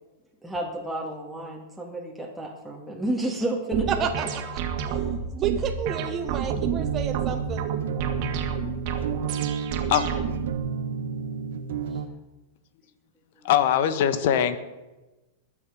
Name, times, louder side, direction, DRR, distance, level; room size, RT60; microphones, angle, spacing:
voice 1, 0.4-4.3, right 1 dB, ahead, -3 dB, 2.4 m, -31 dB
sound 1, 3.7-10.6, right 6 dB, 55° right, 2.1 m, -30 dB
voice 2, 3.9-4.3 5.3-7.7, right 8 dB, 30° right, 5 dB, 1.2 m, -30 dB
sound 2, 6.8-12.1, right 7 dB, 75° right, 1.1 m, -32 dB
voice 3, 13.4-14.6, left 10 dB, 60° left, 11 dB, 1.5 m, -21 dB
21.5 x 7.5 x 5.2 m, 1.1 s
hypercardioid pair, 110°, 0 cm